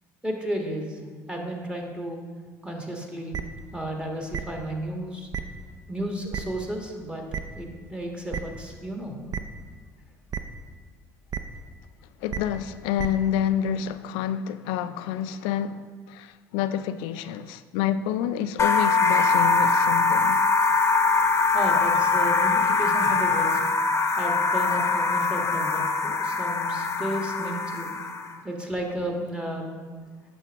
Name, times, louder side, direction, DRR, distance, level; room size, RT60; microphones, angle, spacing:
voice 1, 0.2-1.0 1.3-2.2 2.6-3.4 3.7-5.3 5.9-7.2 7.5-9.2 21.3-23.6 24.2-27.9 28.4-29.7, right 1 dB, 10° right, 1.4 m, -33 dB
sound 1, 3.3-3.4 4.3-4.4 5.3-5.4 6.3-6.4 7.3-7.4 8.3-8.4 9.3-9.4 10.3-10.4 11.3-11.4 12.3-12.4 13.0-13.1, right 8 dB, 50° right, 0.5 m, -30 dB
voice 2, 12.2-20.4, left 9 dB, 75° left, 0.3 m, -28 dB
sound 2, 18.6-28.3, left 4 dB, 30° left, 0.8 m, -22 dB
8.4 x 6.1 x 3.5 m
hypercardioid pair, 70°, 8 cm